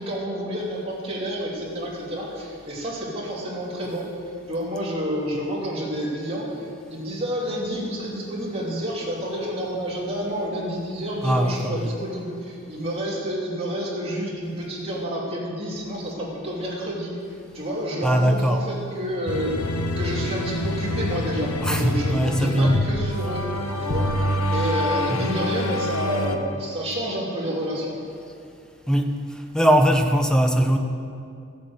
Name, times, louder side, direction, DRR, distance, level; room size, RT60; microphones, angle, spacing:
voice 1, 0.0-4.1 4.5-17.1 17.5-19.5 20.0-23.5 23.9-24.1 24.5-28.0, equal, 25° right, -5 dB, 2.9 m, -29 dB
voice 2, 11.2-11.9 18.0-18.6 21.6-22.9 25.1-25.3 28.9-30.8, equal, 5° left, 5 dB, 0.8 m, -21 dB
sound 1, 19.3-26.4, left 1 dB, 85° left, 1.1 m, -26 dB
15.0 x 8.4 x 8.0 m, 2.4 s
head